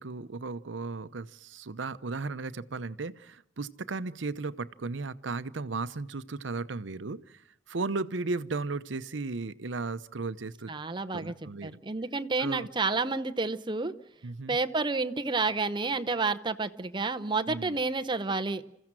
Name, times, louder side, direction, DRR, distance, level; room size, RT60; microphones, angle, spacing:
voice 1, 0.0-10.7 11.1-11.8 12.4-12.7 14.2-14.6 17.5-17.8, right 3 dB, 75° right, 14 dB, 0.8 m, -35 dB
voice 2, 10.7-11.3 11.6-13.9 14.5-18.6, right 3 dB, 25° right, 8 dB, 0.8 m, -30 dB
27.5 x 15.0 x 7.5 m, 0.82 s
head